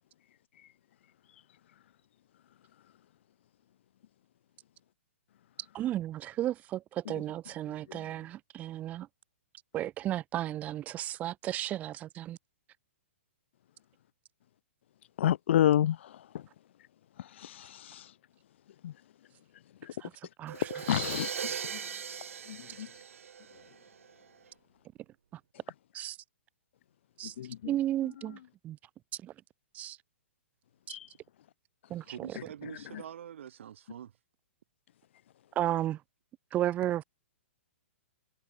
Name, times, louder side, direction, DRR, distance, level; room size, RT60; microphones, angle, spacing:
voice 1, 5.7-9.1 9.7-12.4 20.0-20.1 20.4-21.2 25.9-26.2 27.2-27.3 27.6-28.4 28.6-28.8 29.2-29.3 29.7-30.0 30.9-31.0 31.9-32.3 35.6-36.0 36.5-37.0, right 13 dB, 20° right, 2.6 m, -34 dB
voice 2, 15.2-16.2 17.2-18.1 18.8-18.9 19.8-19.9 20.7-21.3 22.5-22.9 27.4-27.6 30.9-31.1, left 11 dB, 60° left, 0.3 m, -29 dB
Crash cymbal, 20.5-24.2, right 7 dB, 80° right, 5.0 m, -39 dB
voice 3, 32.0-34.1, right 9 dB, 65° right, 4.8 m, -45 dB
hypercardioid pair, 155°, 7 cm